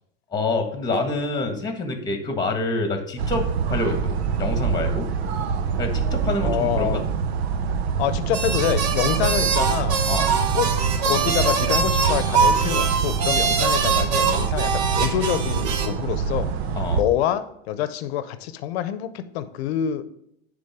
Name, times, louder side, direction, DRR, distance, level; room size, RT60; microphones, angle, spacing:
voice 1, 0.3-5.1 5.8-7.0 10.1-10.3 16.7-17.0, left 2 dB, 15° left, 5 dB, 1.5 m, -27 dB
sound 1, 3.2-17.0, right 6 dB, 90° right, 0.8 m, -25 dB
voice 2, 6.4-7.1 8.0-10.0 10.5-10.7 11.0-16.5 16.9-20.0, left 10 dB, 80° left, 13 dB, 0.8 m, -26 dB
sound 2, 8.3-15.9, right 5 dB, 50° right, 1.1 m, -23 dB
9.8 x 3.7 x 3.6 m, 0.77 s
supercardioid pair, 110°, 31 cm